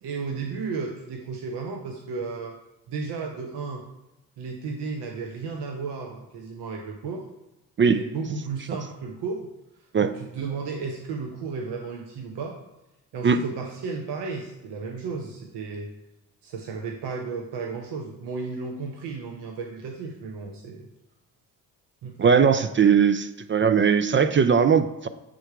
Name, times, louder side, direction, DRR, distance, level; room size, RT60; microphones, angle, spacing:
voice 1, 0.0-2.6 2.9-3.9 4.4-7.3 7.8-9.5 9.8-12.6 13.1-15.9 16.4-20.9 22.0-22.2, right 4 dB, 60° right, 2 dB, 0.9 m, -33 dB
voice 2, 22.2-25.1, right 6 dB, 25° right, 10 dB, 0.4 m, -19 dB
7.7 x 3.6 x 4.6 m, 0.94 s
hypercardioid pair, 45°, 46 cm